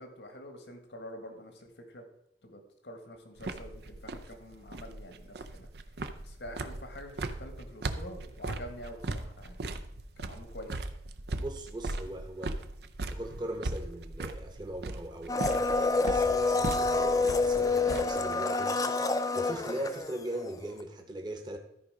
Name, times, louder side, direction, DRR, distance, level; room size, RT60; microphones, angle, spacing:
voice 1, 0.0-2.1 2.4-5.7 6.2-9.6 10.2-10.8, equal, 80° left, 5 dB, 1.7 m, -46 dB
sound 1, 3.4-18.3, right 2 dB, 65° right, 0.6 m, -38 dB
voice 2, 11.4-12.6 13.1-18.8 19.3-21.6, right 1 dB, 25° right, 3 dB, 1.0 m, -40 dB
Domestic sounds home sounds, 15.3-20.6 20.8-20.9, left 3 dB, 20° left, 0.5 m, -28 dB
13.0 x 5.0 x 4.9 m, 0.79 s
head